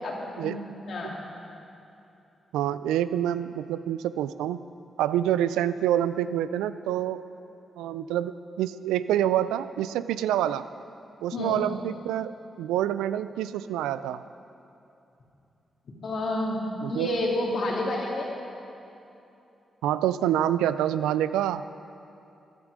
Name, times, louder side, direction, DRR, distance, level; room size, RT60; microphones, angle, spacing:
voice 1, 2.5-4.6 5.0-7.2 7.8-10.7 11.2-14.2 16.8-17.1 19.8-21.6, right 11 dB, 85° right, 14 dB, 0.3 m, -27 dB
voice 2, 11.3-11.6 16.0-16.6 16.9-18.3, left 1 dB, 65° left, -2 dB, 2.8 m, -29 dB
15.5 x 11.5 x 5.0 m, 2.8 s
hypercardioid pair, 40°, 0 cm